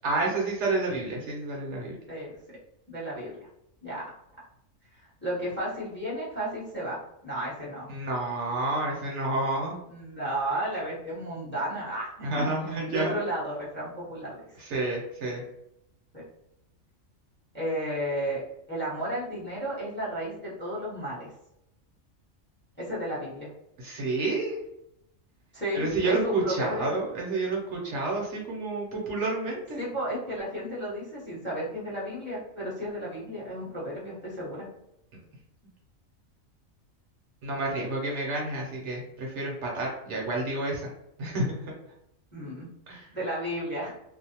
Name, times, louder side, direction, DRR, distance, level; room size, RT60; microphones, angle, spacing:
voice 1, 0.0-2.0 7.9-9.7 12.2-13.1 14.6-15.4 23.8-24.6 25.7-29.8 37.4-40.9 41.2-41.7 42.9-43.1, right 2 dB, 65° right, -2 dB, 0.9 m, -29 dB
voice 2, 2.9-3.4 3.8-4.0 5.0-7.9 9.9-12.4 12.9-14.3 16.1-16.2 17.5-18.4 18.7-21.3 22.8-23.5 25.5-26.9 29.8-34.7 42.3-42.7 43.1-43.9, equal, 10° left, -7 dB, 0.8 m, -33 dB
2.5 x 2.1 x 2.7 m, 0.80 s
omnidirectional pair, 1.4 m